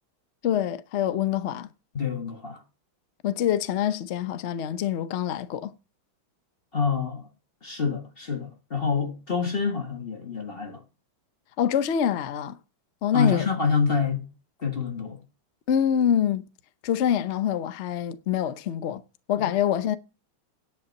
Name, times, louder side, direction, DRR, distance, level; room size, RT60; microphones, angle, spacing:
voice 1, 0.4-1.7 3.2-5.7 11.6-12.6 13.0-13.5 15.7-16.4 16.8-19.0 19.3-20.0, left 9 dB, 90° left, 0.6 m, -25 dB
voice 2, 1.9-2.6 6.7-7.3 7.6-10.8 13.1-14.3 14.6-15.2 19.4-19.5, left 5 dB, 35° left, 1.2 m, -27 dB
10.5 x 5.5 x 8.0 m
omnidirectional pair, 2.3 m